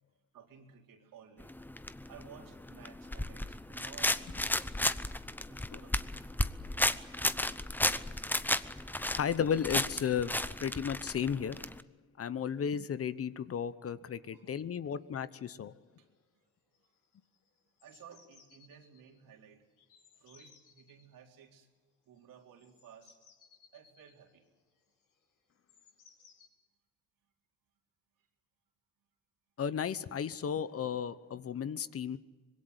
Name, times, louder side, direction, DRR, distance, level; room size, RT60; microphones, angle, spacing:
voice 1, 0.3-1.5 1.8-4.2 4.7-5.0 5.5-6.3 7.6-8.0 14.3-14.6 16.0-16.1 17.8-19.6 20.1-21.7 22.1-23.2 23.7-24.4, right 8 dB, 70° right, 2 dB, 4.0 m, -56 dB
sound 1, 1.4-11.8, left 1 dB, 5° left, 0.8 m, -34 dB
voice 2, 9.1-11.6 12.2-15.7 29.6-32.2, left 8 dB, 40° left, 15 dB, 1.0 m, -34 dB
sound 2, 15.2-15.3 15.4-15.8 16.1-16.5 16.7-19.0 19.8-21.1 22.2-26.5, left 6 dB, 70° left, 7.5 m, -64 dB
25.0 x 21.5 x 8.2 m, 1.3 s
cardioid pair, 105°, 34 cm